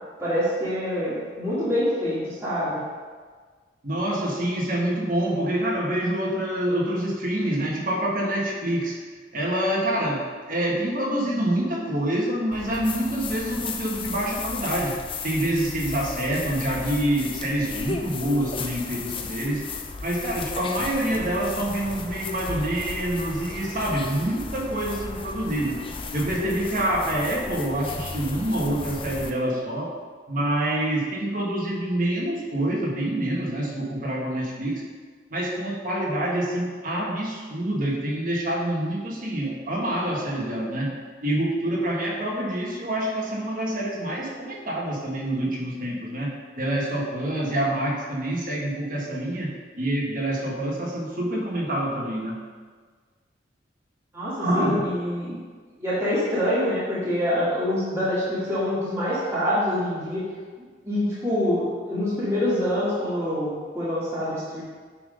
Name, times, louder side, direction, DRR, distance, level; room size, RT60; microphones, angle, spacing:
voice 1, 0.2-2.8 54.1-55.4 55.8-60.2 60.8-64.6, left 1 dB, 15° right, -11 dB, 2.4 m, -25 dB
voice 2, 3.8-9.0 9.3-15.0 15.2-19.6 20.0-25.8 26.1-29.9 30.3-34.8 35.3-40.9 41.2-46.3 46.6-52.4 54.4-54.8, right 1 dB, 50° right, -3 dB, 1.7 m, -26 dB
sound 1, 12.5-29.3, left 4 dB, 30° left, 0.5 m, -35 dB
9.3 x 3.9 x 5.1 m, 1.5 s
head